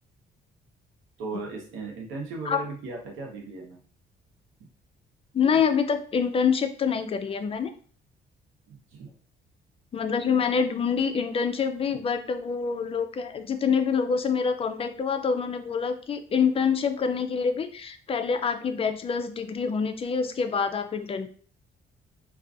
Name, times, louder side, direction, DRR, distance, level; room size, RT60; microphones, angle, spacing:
voice 1, 1.2-3.8 4.6-4.7 5.5-5.6 8.7-9.1, right 3 dB, 85° right, 0 dB, 0.9 m, -37 dB
voice 2, 5.3-7.7 9.9-21.3, left 6 dB, 30° left, 8 dB, 0.3 m, -26 dB
2.4 x 2.3 x 2.5 m, 0.43 s
cardioid pair, 90°, 20 cm